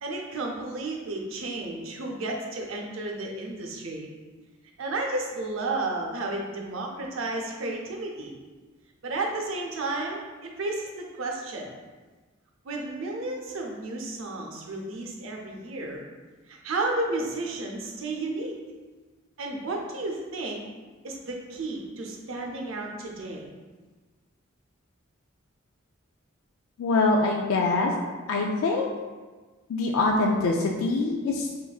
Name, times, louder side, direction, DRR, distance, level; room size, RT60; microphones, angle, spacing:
voice 1, 0.0-4.1 4.8-8.3 9.0-11.7 12.6-16.0 16.5-18.6 19.4-20.6 21.0-23.5, right 2 dB, 75° right, 1 dB, 0.6 m, -32 dB
voice 2, 26.8-27.9 28.3-28.9 29.7-31.6, left 3 dB, 90° left, 1 dB, 0.4 m, -24 dB
5.7 x 2.5 x 2.3 m, 1.3 s
head